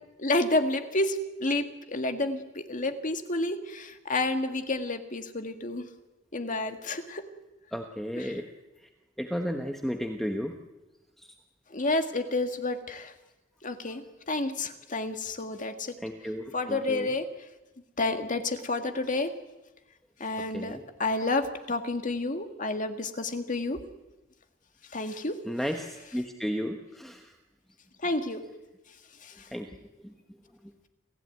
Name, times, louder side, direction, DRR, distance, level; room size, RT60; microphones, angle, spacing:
voice 1, 0.2-5.9 6.3-7.2 8.2-8.3 11.7-13.1 13.6-16.0 16.5-17.3 18.0-19.3 20.2-23.8 24.9-25.4 28.0-28.4 29.2-29.3, left 2 dB, 40° left, 7 dB, 2.1 m, -30 dB
voice 2, 7.7-8.4 9.2-10.6 16.0-17.1 20.5-20.8 25.5-27.3 29.5-29.7 30.0-30.1, equal, ahead, 4 dB, 1.2 m, -33 dB
28.5 x 15.5 x 9.4 m, 1.1 s
head